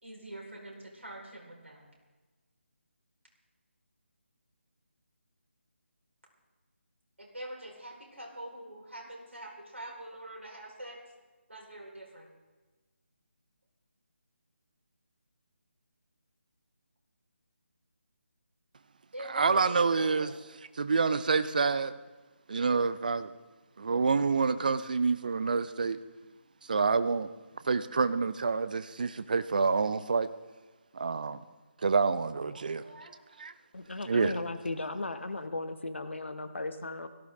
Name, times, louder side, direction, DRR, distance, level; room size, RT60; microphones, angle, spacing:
voice 1, 0.0-1.9 7.2-11.0 11.5-12.3 19.1-20.4 32.5-33.2, right 1 dB, 70° right, -2 dB, 4.9 m, -44 dB
voice 2, 19.3-20.3 20.8-21.9 22.5-23.3 23.8-26.0 26.7-27.3 27.6-30.3 30.9-31.4 31.8-32.8 33.4-33.5 34.1-34.3, right 4 dB, 40° right, 14 dB, 0.6 m, -27 dB
voice 3, 33.7-37.1, left 2 dB, 65° left, 8 dB, 1.3 m, -36 dB
17.5 x 14.5 x 3.7 m, 1.2 s
figure-of-eight pair, 155°, 7 cm